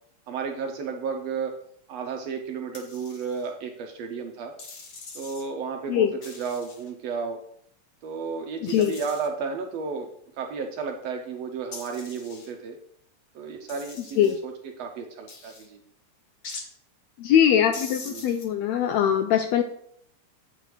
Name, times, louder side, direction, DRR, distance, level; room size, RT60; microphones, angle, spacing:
voice 1, 0.3-1.6 1.9-4.5 5.1-7.4 8.0-10.1 10.4-12.8 13.3-14.5 14.8-15.8 18.1-18.3, right 5 dB, 75° right, 3 dB, 1.6 m, -33 dB
sound 1, 2.7-3.5 4.6-5.5 6.2-6.9 8.7-9.3 11.7-12.5 13.7-14.4 15.3-15.7 16.4-16.7 17.7-18.5, left 4 dB, 55° left, 1.3 m, -42 dB
voice 2, 8.6-9.0 14.2-14.4 17.2-19.6, left 9 dB, 80° left, 8 dB, 1.6 m, -22 dB
8.3 x 7.7 x 3.2 m, 0.68 s
omnidirectional pair, 3.5 m